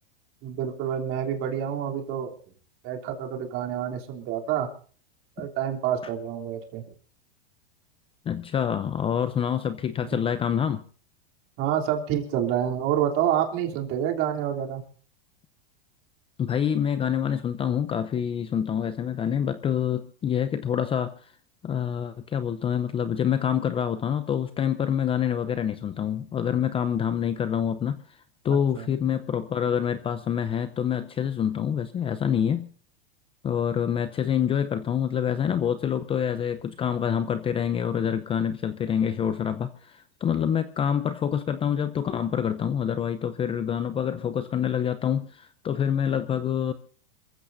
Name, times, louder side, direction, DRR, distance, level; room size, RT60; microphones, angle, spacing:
voice 1, 0.4-2.3 2.8-4.7 5.4-6.8 10.0-10.2 11.6-14.8 28.8-28.9, right 10 dB, 45° right, 3.2 m, -28 dB
voice 2, 8.3-10.8 16.4-21.1 21.6-28.2 28.4-32.7 33.4-46.7, left 8 dB, 20° left, 0.6 m, -26 dB
27.5 x 15.0 x 2.7 m
supercardioid pair, 135°, 29 cm